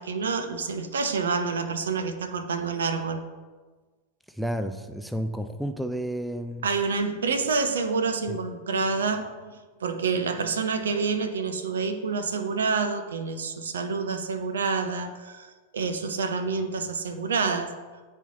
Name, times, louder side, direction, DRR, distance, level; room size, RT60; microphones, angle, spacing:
voice 1, 0.0-3.2 6.6-9.5 9.8-17.7, right 4 dB, 65° right, 8 dB, 0.5 m, -28 dB
voice 2, 4.3-6.7 8.3-8.4, equal, ahead, 9 dB, 0.3 m, -31 dB
9.7 x 4.2 x 2.6 m, 1.3 s
figure-of-eight pair, 90°, 0 cm